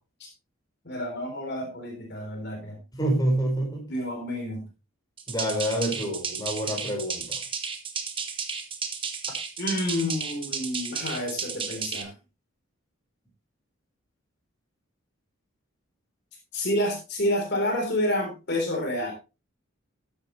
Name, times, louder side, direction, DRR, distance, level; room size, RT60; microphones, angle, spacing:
voice 1, 0.8-2.8 3.9-4.6 8.9-9.0 9.6-12.1 16.5-19.1, left 1 dB, 55° left, 2 dB, 3.7 m, -29 dB
voice 2, 2.9-3.8 5.3-7.4, right 1 dB, 20° left, 0 dB, 4.8 m, -27 dB
sound 1, 5.2-12.0, right 6 dB, 25° right, 1.4 m, -33 dB
14.0 x 9.2 x 3.2 m, 0.29 s
head